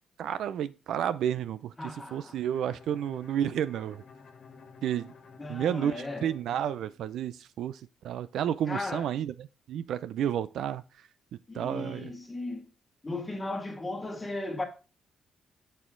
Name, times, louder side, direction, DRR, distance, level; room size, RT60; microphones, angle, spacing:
voice 1, 0.2-4.0 4.8-5.1 5.5-10.8 11.5-12.1, right 10 dB, 75° right, 0.4 m, -31 dB
voice 2, 1.8-2.4 5.4-6.3 8.7-9.1 11.5-12.7 13.0-14.6, left 2 dB, 15° left, 2.0 m, -36 dB
Bowed string instrument, 2.5-7.3, left 5 dB, 60° left, 1.5 m, -52 dB
7.2 x 6.5 x 3.8 m
cardioid pair, 105°, 0 cm